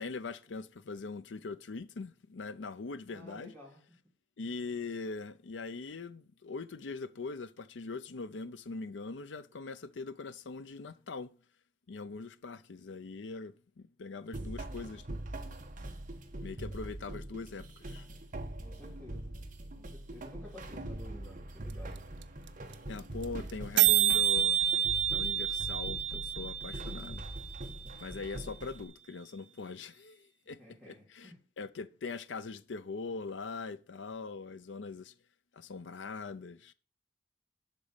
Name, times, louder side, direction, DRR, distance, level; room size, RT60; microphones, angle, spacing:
voice 1, 0.0-3.5 4.4-11.4 11.9-15.2 16.4-18.1 22.9-24.6 25.1-27.3 28.0-35.1 35.5-36.7, left 4 dB, 85° left, 0.6 m, -42 dB
voice 2, 3.1-3.8 16.7-16.9 18.6-19.4 19.7-22.0 30.4-31.4, left 1 dB, 5° right, 2.6 m, -52 dB
sound 1, 14.3-28.8, right 1 dB, 45° right, 1.3 m, -43 dB
sound 2, 21.7-21.8 22.0-22.1 22.2-22.5 22.7-22.8 23.0-23.2 23.5-23.6 23.8-27.7, right 11 dB, 70° right, 0.7 m, -28 dB
11.5 x 4.1 x 7.1 m
head